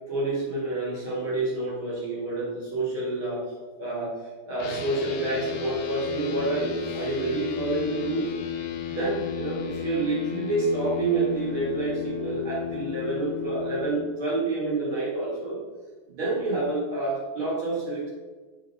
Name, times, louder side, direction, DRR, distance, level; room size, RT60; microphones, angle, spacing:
voice 1, 0.1-3.4 3.8-8.3 8.9-15.6 16.1-18.1, right 2 dB, 50° right, -8 dB, 1.7 m, -28 dB
sound 1, 4.6-14.0, left 10 dB, 75° left, 2.3 m, -34 dB
9.1 x 3.8 x 4.1 m, 1.3 s
omnidirectional pair, 4.7 m